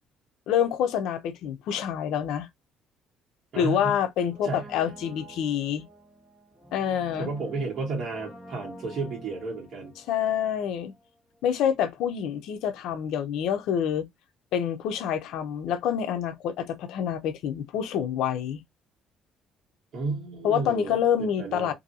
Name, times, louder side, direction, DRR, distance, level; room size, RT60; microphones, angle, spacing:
voice 1, 0.5-2.5 3.6-5.8 6.7-7.3 10.1-10.9 11.4-14.1 14.5-18.6 20.4-21.7, left 9 dB, 80° left, 0.5 m, -27 dB
voice 2, 3.5-4.0 4.4-4.7 7.2-9.9 19.9-21.7, right 3 dB, 55° right, 1.3 m, -32 dB
Brass instrument, 4.2-11.1 11.3-11.4, right 1 dB, 20° right, 1.3 m, -47 dB
2.6 x 2.6 x 2.7 m
cardioid pair, 120°, 0 cm